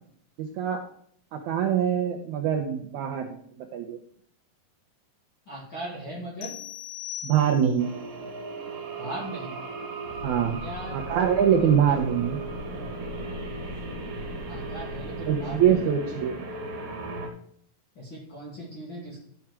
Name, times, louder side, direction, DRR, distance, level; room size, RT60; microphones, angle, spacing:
voice 1, 0.4-0.8 1.3-3.4 3.7-4.0 7.2-7.9 10.2-10.6 10.9-12.4 15.2-16.4, right 8 dB, 80° right, 3 dB, 1.8 m, -24 dB
voice 2, 5.5-6.6 9.0-9.5 10.6-11.0 11.4-11.8 14.5-15.8 18.0-19.2, right 1 dB, 35° left, -6 dB, 2.6 m, -39 dB
sound 1, 6.4-7.9, left 12 dB, 80° left, 1.8 m, -39 dB
sound 2, 7.8-17.3, right 4 dB, 65° right, 2.8 m, -37 dB
sound 3, 10.0-15.7, left 3 dB, 55° left, 2.7 m, -40 dB
12.0 x 4.6 x 4.7 m, 0.63 s
omnidirectional pair, 4.1 m